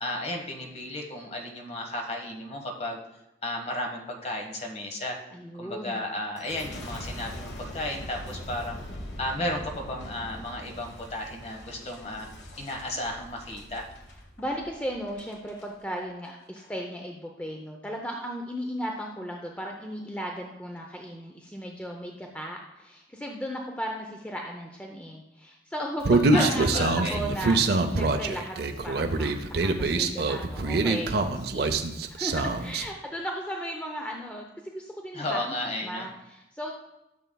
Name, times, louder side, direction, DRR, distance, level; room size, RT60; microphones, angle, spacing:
voice 1, 0.0-3.0 3.4-5.2 5.6-8.8 9.2-12.3 12.6-13.8 26.3-27.2 35.1-36.1, left 1 dB, 35° left, 2 dB, 1.3 m, -33 dB
voice 2, 5.3-6.0 14.4-31.6 32.1-36.7, equal, 10° left, 1 dB, 0.6 m, -36 dB
Boom, 6.4-15.7 16.2-16.7, left 1 dB, 85° left, 1.2 m, -42 dB
Human voice, 26.0-32.9, right 3 dB, 65° right, 0.6 m, -25 dB
12.5 x 6.9 x 2.3 m, 0.94 s
head